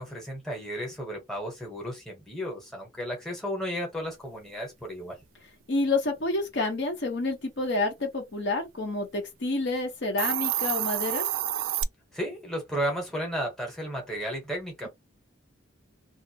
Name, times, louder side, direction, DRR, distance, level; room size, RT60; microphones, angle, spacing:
voice 1, 0.0-5.2 12.1-14.9, equal, ahead, 0.9 m, -33 dB
voice 2, 5.7-11.3, left 2 dB, 65° left, 0.7 m, -29 dB
Hiss, 10.0-11.8, right 12 dB, 85° right, 0.3 m, -28 dB
2.3 x 2.0 x 2.7 m
head